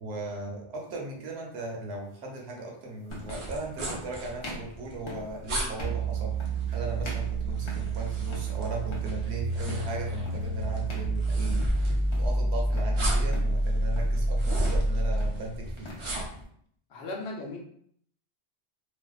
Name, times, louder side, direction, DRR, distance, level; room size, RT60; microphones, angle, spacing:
voice 1, 0.0-15.9, right 2 dB, 70° right, 0 dB, 0.9 m, -38 dB
sound 1, 0.9-1.1 2.4-2.5 3.1-3.5 3.9-4.1 4.4-4.7 5.1-5.3 5.7-6.0 6.4-6.7 7.0-8.0 8.3-8.6 8.8-9.2 9.7-9.9 10.3-10.5 10.9-11.1 11.4-11.8 12.1-12.9 13.3-13.6 13.9-14.2 14.5-14.9 15.2-16.1, left 2 dB, 55° left, 0.3 m, -43 dB
sound 2, 3.1-16.4, right 1 dB, 45° right, 0.4 m, -38 dB
sound 3, 5.8-15.4, right 2 dB, 5° right, 0.8 m, -28 dB
voice 2, 16.9-17.6, left 2 dB, 75° left, -1 dB, 0.9 m, -36 dB
2.6 x 2.2 x 2.3 m, 0.64 s
omnidirectional pair, 1.2 m